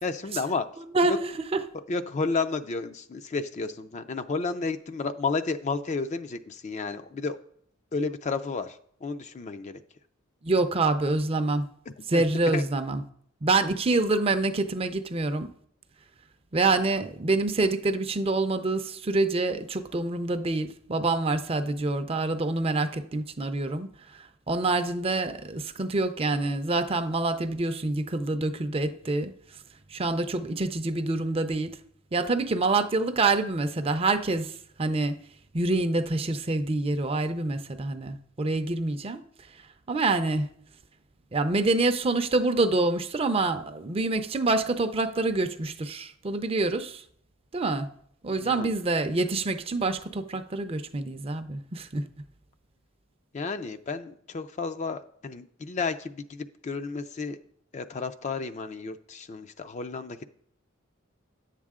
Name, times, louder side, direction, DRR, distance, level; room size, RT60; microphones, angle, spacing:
voice 1, 0.0-0.7 1.1-1.2 1.9-7.4 7.9-9.8 11.9-12.2 12.5-12.6 48.3-48.7 53.3-57.4 57.7-60.2, left 4 dB, 35° left, 0.4 m, -32 dB
voice 2, 0.8-1.6 10.4-11.7 12.1-13.0 13.4-15.5 16.5-29.3 29.9-31.7 32.1-34.5 34.8-35.2 35.5-39.2 39.9-40.5 41.3-47.0 47.5-47.9 48.2-52.0, right 3 dB, 30° right, 0.5 m, -26 dB
10.5 x 7.4 x 3.6 m
head